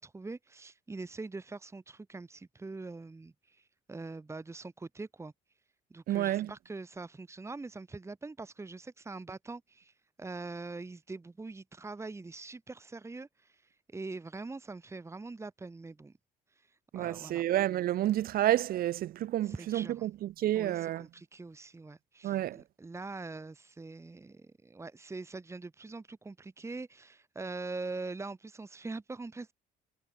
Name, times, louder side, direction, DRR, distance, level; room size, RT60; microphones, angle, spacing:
voice 1, 0.0-5.3 5.9-9.9 10.2-13.6 13.9-16.1 17.0-17.4 19.4-20.1 20.5-29.5, right 3 dB, 15° right, 2.0 m, -43 dB
voice 2, 6.1-6.5 16.9-21.0 22.2-22.6, right 13 dB, 60° right, 0.8 m, -30 dB
cardioid pair, 110°, 17 cm